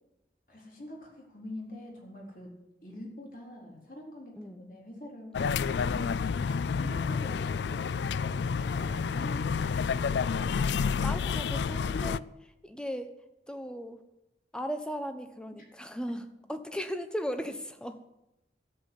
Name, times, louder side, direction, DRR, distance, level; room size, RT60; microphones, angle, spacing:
voice 1, 0.5-2.5 2.8-5.3 5.7-9.4, left 1 dB, 50° left, -1 dB, 4.1 m, -45 dB
sound 1, 5.3-12.2, left 5 dB, 80° left, 0.4 m, -29 dB
voice 2, 10.7-13.2 13.5-14.0 14.5-18.0, equal, 5° left, 8 dB, 1.0 m, -37 dB
13.0 x 7.8 x 10.0 m, 0.89 s
head